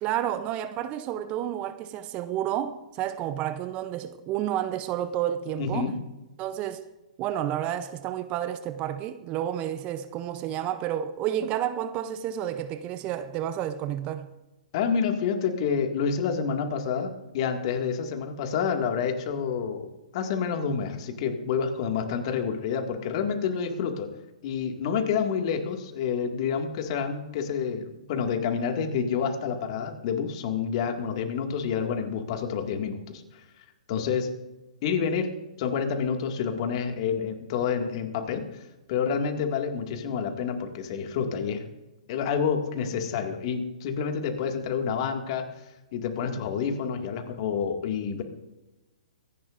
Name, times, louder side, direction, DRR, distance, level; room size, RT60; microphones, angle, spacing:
voice 1, 0.0-5.9 6.4-6.8 7.2-14.3, right 11 dB, 30° right, 0.6 m, -30 dB
voice 2, 5.6-5.9 14.7-24.1 24.4-33.2 33.9-34.3 34.8-35.3 35.6-38.5 38.9-41.6 42.1-45.5 45.9-48.2, left 6 dB, 45° left, 2.0 m, -28 dB
25.0 x 11.0 x 2.6 m
hypercardioid pair, 135°, 4 cm